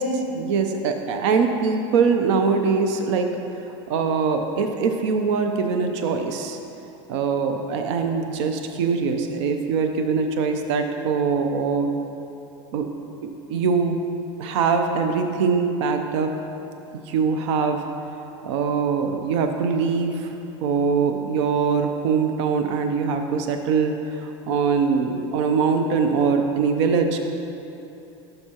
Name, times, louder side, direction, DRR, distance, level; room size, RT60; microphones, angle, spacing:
voice 1, 0.0-3.3 3.9-6.6 7.1-11.9 12.7-12.9 13.2-14.0 14.4-16.3 17.1-17.8 18.4-20.3 20.6-27.2, right 5 dB, 80° right, 5 dB, 0.6 m, -22 dB
11.5 x 6.6 x 2.9 m, 2.8 s
supercardioid pair, 110°, 15 cm